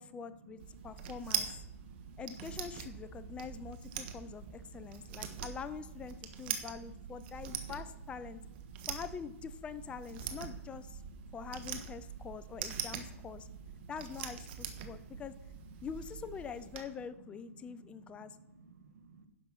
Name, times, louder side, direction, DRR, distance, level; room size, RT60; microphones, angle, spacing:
voice 1, 0.0-1.5 2.2-8.4 8.9-11.0 11.3-13.5 13.9-15.3 15.8-18.4, left 6 dB, 15° left, 14 dB, 0.4 m, -45 dB
sound 1, 0.6-16.8, right 8 dB, 45° right, 1.3 m, -43 dB
voice 2, 1.8-2.2 4.5-5.4 7.5-7.6 8.7-8.9 11.2-11.4 12.8-12.9 13.5-13.9 14.8-15.2 17.6-17.9 18.2-19.3, right 4 dB, 75° right, 8 dB, 1.5 m, -58 dB
10.5 x 6.0 x 6.0 m, 0.91 s
hypercardioid pair, 130°, 8 cm